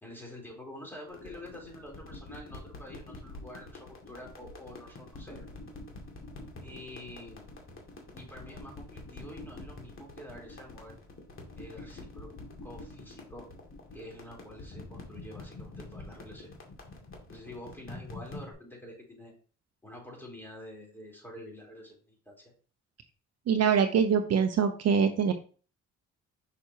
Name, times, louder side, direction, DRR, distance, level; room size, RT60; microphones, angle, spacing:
voice 1, 0.0-5.5 6.6-7.5 8.1-10.9 11.6-12.3 12.6-13.5 13.9-16.5 17.3-19.3 19.8-22.5, left 1 dB, 5° left, -1 dB, 3.6 m, -47 dB
sound 1, 1.1-18.5, left 2 dB, 45° left, 2.2 m, -46 dB
voice 2, 23.5-25.3, right 6 dB, 55° right, 7 dB, 0.7 m, -24 dB
6.2 x 5.9 x 2.8 m, 0.39 s
cardioid pair, 90°, 30 cm